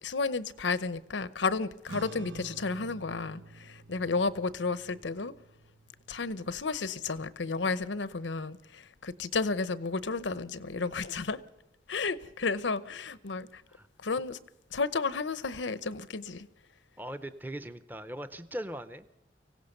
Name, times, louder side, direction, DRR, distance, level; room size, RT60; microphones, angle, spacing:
voice 1, 0.0-5.3 6.1-11.4 11.9-13.6 14.0-14.4 14.7-16.5, left 4 dB, 90° left, 0.9 m, -32 dB
sound 1, 1.8-8.5, right 3 dB, 90° right, 0.9 m, -50 dB
voice 2, 17.0-19.2, equal, 10° right, 0.6 m, -40 dB
24.5 x 16.5 x 6.6 m
head